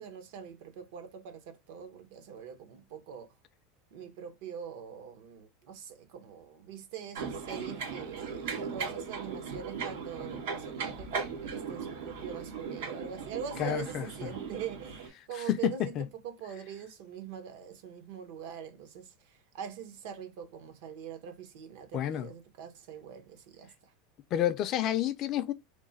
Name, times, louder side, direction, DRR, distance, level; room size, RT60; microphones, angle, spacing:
voice 1, 0.0-3.3 3.9-23.9, right 8 dB, 65° right, 0.8 m, -43 dB
sound 1, 7.1-15.1, right 5 dB, 90° right, 1.3 m, -38 dB
voice 2, 13.6-14.0 15.5-16.1 21.9-22.3 24.3-25.5, left 12 dB, 35° left, 0.3 m, -29 dB
3.1 x 2.1 x 3.9 m
supercardioid pair, 165°, 0 cm